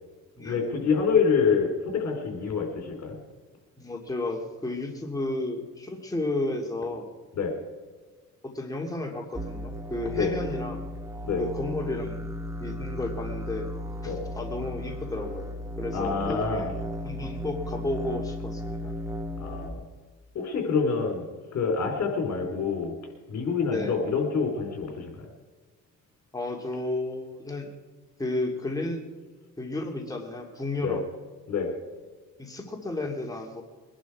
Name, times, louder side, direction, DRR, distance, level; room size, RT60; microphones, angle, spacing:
voice 1, 0.4-3.2 7.4-7.6 10.1-10.3 11.2-11.4 14.1-14.2 15.9-16.7 19.4-19.8 20.3-22.9 23.3-25.1 30.8-31.0 31.5-31.7, left 5 dB, 65° left, 3 dB, 3.8 m, -26 dB
voice 2, 3.8-7.1 8.4-10.8 11.4-12.3 12.6-13.7 14.0-16.8 17.0-18.9 23.7-24.0 26.3-27.7 28.2-29.0 29.6-31.0 32.4-33.6, left 2 dB, 10° left, 1 dB, 2.5 m, -32 dB
sound 1, 9.3-19.7, equal, 10° right, 1.9 m, -35 dB
22.0 x 11.5 x 4.8 m, 1.4 s
cardioid pair, 90°, 30 cm